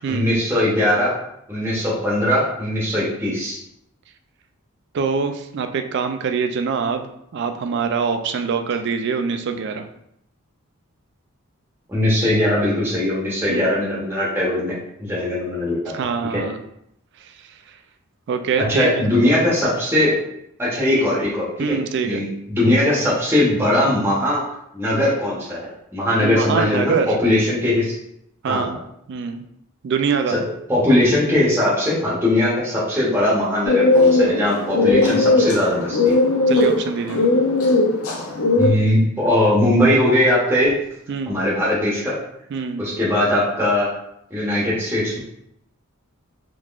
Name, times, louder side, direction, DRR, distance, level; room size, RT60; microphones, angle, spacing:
voice 1, 0.1-1.1 1.5-3.6 11.9-15.9 16.3-16.4 18.6-20.2 20.6-21.8 22.0-24.4 24.7-25.6 25.9-27.9 28.5-28.6 30.3-30.4 30.7-36.2 38.6-40.7 41.3-42.1 42.8-43.9 44.3-45.2, left 1 dB, 10° right, -7 dB, 0.8 m, -20 dB
voice 2, 4.9-9.9 13.5-13.6 15.9-16.5 17.2-17.3 18.3-19.1 21.6-22.2 26.2-27.1 28.4-28.8 29.1-29.4 29.8-30.4 36.5-37.2 41.1-41.4 42.5-42.8, right 5 dB, 50° right, 7 dB, 0.3 m, -24 dB
sound 1, 33.7-38.7, left 2 dB, 75° left, 0.5 m, -18 dB
3.6 x 3.0 x 2.4 m, 0.75 s
head